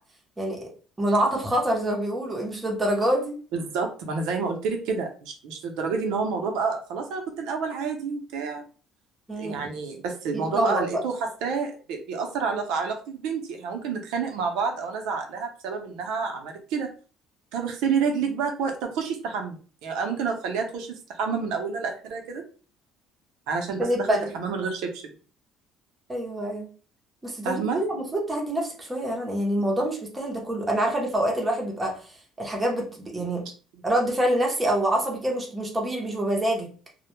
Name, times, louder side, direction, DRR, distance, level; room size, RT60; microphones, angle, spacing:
voice 1, 0.4-0.7 1.0-3.4 9.3-9.7 10.3-11.0 23.8-24.3 26.1-26.7 27.2-33.5 33.8-36.7, right 1 dB, 10° right, -1 dB, 0.6 m, -26 dB
voice 2, 3.5-8.6 9.4-16.9 17.5-22.4 23.5-25.0 27.4-27.8, right 5 dB, 80° right, 3 dB, 0.5 m, -29 dB
2.1 x 2.0 x 2.9 m, 0.38 s
cardioid pair, 160°, 0 cm